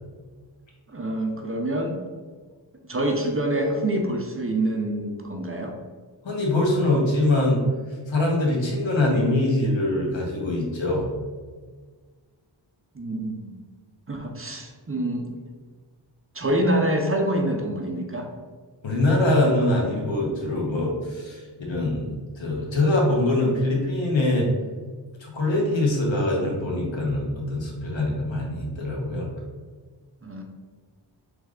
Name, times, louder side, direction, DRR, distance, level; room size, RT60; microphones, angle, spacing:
voice 1, 0.9-2.0 2.9-5.7 12.9-13.6 14.1-15.3 16.3-18.3 30.2-30.4, right 1 dB, 30° right, 1 dB, 0.5 m, -26 dB
voice 2, 6.2-7.6 8.1-11.1 18.8-24.5 25.2-29.3, left 2 dB, 75° left, -2 dB, 1.1 m, -23 dB
3.4 x 3.1 x 3.6 m, 1.5 s
wide cardioid pair, 80°, 46 cm